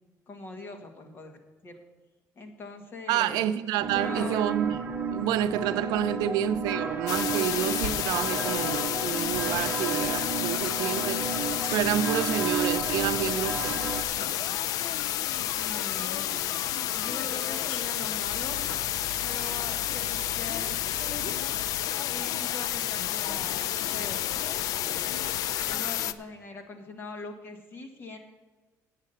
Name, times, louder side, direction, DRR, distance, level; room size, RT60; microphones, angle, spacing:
voice 1, 0.3-1.8 2.3-3.4 3.9-4.5 6.1-6.3 15.5-16.5 16.9-18.6 19.2-21.4 22.0-25.1 25.6-28.2, left 3 dB, 35° left, 1.5 m, -42 dB
voice 2, 3.1-4.8 5.1-11.2 11.7-14.0, right 10 dB, 90° right, 0.5 m, -29 dB
sound 1, 3.8-14.0, right 5 dB, 30° right, 0.9 m, -33 dB
sound 2, 7.0-26.2, left 5 dB, 90° left, 1.1 m, -48 dB
sound 3, 7.1-26.1, left 12 dB, 65° left, 0.4 m, -30 dB
8.4 x 7.4 x 7.8 m
cardioid pair, 150°, 7 cm